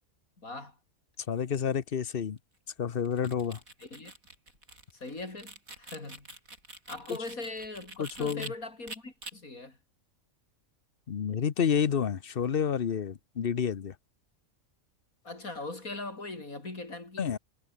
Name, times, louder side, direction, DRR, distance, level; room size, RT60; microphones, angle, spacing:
voice 1, 0.4-0.8 3.8-4.1 4.9-6.3 6.9-9.8 15.2-17.3, left 2 dB, 85° left, 5.3 m, -40 dB
voice 2, 1.3-2.4 2.8-3.6 8.0-8.5 11.1-13.9 17.2-17.4, left 7 dB, 45° left, 1.0 m, -29 dB
sound 1, 3.0-8.5 8.9-9.3, right 2 dB, 80° right, 8.0 m, -46 dB
omnidirectional pair, 1.4 m